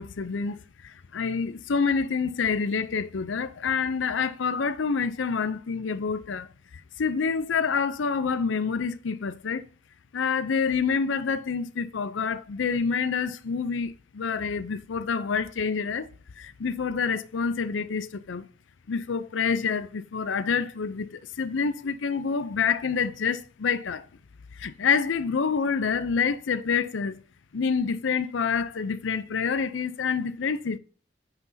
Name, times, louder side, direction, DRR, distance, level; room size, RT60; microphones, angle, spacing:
voice 1, 0.0-6.5 7.0-9.6 10.1-16.1 16.4-18.5 18.9-24.1 24.5-27.2 27.5-30.8, left 5 dB, 90° left, 0.5 m, -27 dB
9.5 x 5.9 x 2.7 m
head